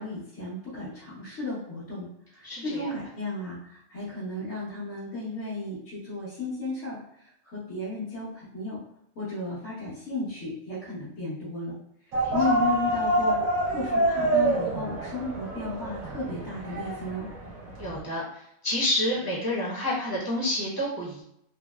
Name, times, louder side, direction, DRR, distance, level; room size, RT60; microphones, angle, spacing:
voice 1, 0.0-8.8 9.1-11.7 12.1-17.3, left 2 dB, 70° left, -12 dB, 1.5 m, -34 dB
voice 2, 2.4-2.9 12.2-12.3 17.8-21.2, left 1 dB, 20° right, -8 dB, 0.7 m, -29 dB
sound 1, 12.1-18.0, right 1 dB, 85° right, 1.1 m, -27 dB
3.9 x 2.0 x 2.3 m, 0.74 s
omnidirectional pair, 1.4 m